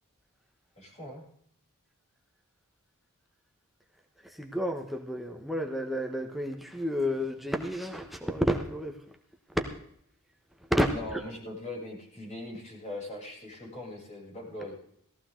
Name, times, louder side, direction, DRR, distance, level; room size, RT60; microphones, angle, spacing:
voice 1, 0.8-1.2 10.9-14.7, left 1 dB, 30° left, -4 dB, 7.9 m, -40 dB
voice 2, 4.2-9.0 9.5-9.6 10.7-11.2, equal, ahead, 3 dB, 1.1 m, -30 dB
17.5 x 14.5 x 3.9 m, 0.67 s
head